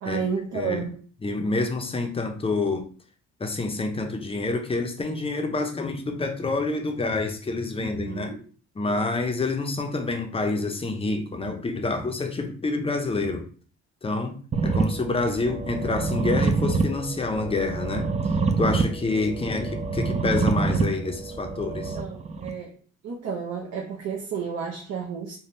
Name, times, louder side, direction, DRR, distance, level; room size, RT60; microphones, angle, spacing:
voice 1, 0.0-1.0 7.8-8.4 21.9-22.7 23.0-25.4, right 6 dB, 60° right, -1 dB, 0.7 m, -32 dB
voice 2, 0.5-0.9 1.2-2.9 3.4-8.4 8.7-13.5 14.0-18.1 18.6-22.0, left 3 dB, 20° left, 4 dB, 0.6 m, -27 dB
sound 1, 14.5-22.5, right 4 dB, 25° right, 0.4 m, -26 dB
3.4 x 2.2 x 2.6 m, 0.41 s
cardioid pair, 90°, 30 cm